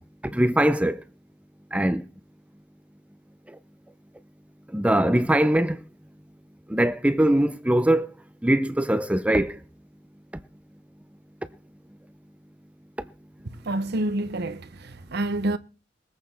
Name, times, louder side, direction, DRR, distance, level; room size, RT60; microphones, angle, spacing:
voice 1, 0.2-1.0 1.7-2.0 4.7-5.8 6.7-8.1 8.4-9.6, right 1 dB, 5° right, 0.6 m, -21 dB
voice 2, 13.4-15.6, right 1 dB, 60° right, 0.9 m, -28 dB
21.5 x 8.6 x 4.5 m
head